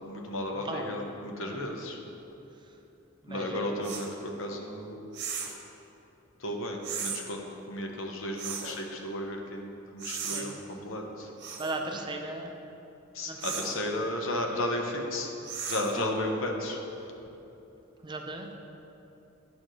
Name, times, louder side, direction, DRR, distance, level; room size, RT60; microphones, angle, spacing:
voice 1, 0.0-2.0 3.3-5.0 6.4-11.3 13.1-15.3 15.7-16.8, left 1 dB, 75° left, 2 dB, 0.9 m, -34 dB
voice 2, 0.6-1.0 1.4-1.7 3.2-3.7 10.2-10.5 11.6-12.5 13.3-13.4 13.6-13.7 18.0-18.6, right 2 dB, 25° right, 3 dB, 0.5 m, -37 dB
sound 1, 3.8-4.1 5.1-5.6 6.8-7.2 8.4-8.8 10.0-10.4 11.4-11.8 13.4-13.7 15.4-16.0, right 6 dB, 60° right, 0.9 m, -36 dB
10.0 x 6.9 x 3.1 m, 3.0 s
head